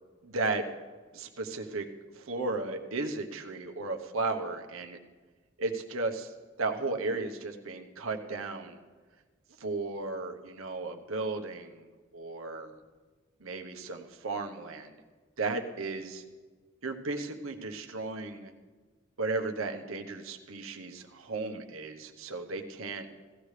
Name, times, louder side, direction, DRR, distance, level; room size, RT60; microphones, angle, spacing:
voice 1, 0.2-0.6 1.1-1.9 2.1-5.0 5.6-6.3 6.6-8.8 9.6-11.8 12.1-12.8 13.4-14.9 15.4-16.2 16.8-18.5 19.2-23.1, right 3 dB, 85° right, 5 dB, 1.0 m, -35 dB
17.0 x 14.0 x 3.3 m, 1.4 s
head